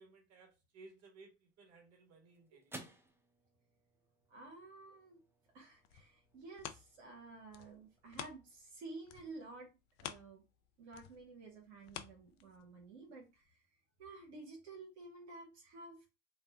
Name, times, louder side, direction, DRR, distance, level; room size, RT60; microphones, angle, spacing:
voice 1, 0.0-3.0, right 3 dB, 50° right, 1.4 m, -60 dB
sound 1, 1.4-10.0, right 1 dB, 5° right, 0.6 m, -60 dB
voice 2, 4.3-5.2 5.5-9.7 10.0-10.4 10.8-13.6 14.0-16.1, right 3 dB, 80° right, 1.0 m, -52 dB
sound 2, 5.6-8.8 9.0-12.9 13.4-13.5, left 11 dB, 60° left, 0.5 m, -51 dB
2.6 x 2.2 x 3.4 m
hypercardioid pair, 75°, 33 cm